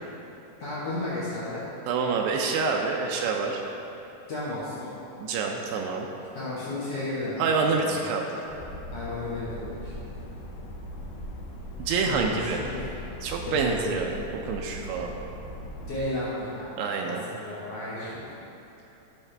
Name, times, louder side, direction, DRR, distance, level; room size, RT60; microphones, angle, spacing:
voice 1, 0.6-1.6 4.3-4.9 6.3-7.9 8.9-9.9 12.0-12.8 13.4-14.0 15.9-16.8 17.0-18.3, left 2 dB, 90° left, -9 dB, 1.3 m, -33 dB
voice 2, 1.9-3.6 5.2-6.1 7.4-8.4 11.8-12.6 13.2-15.1 16.8-17.2, right 5 dB, 80° right, 1 dB, 2.5 m, -27 dB
Stadt - Winter Morgen Innenhof, 8.4-16.0, equal, 70° left, 2.1 m, -39 dB
13.5 x 5.8 x 3.3 m, 2.9 s
omnidirectional pair, 5.0 m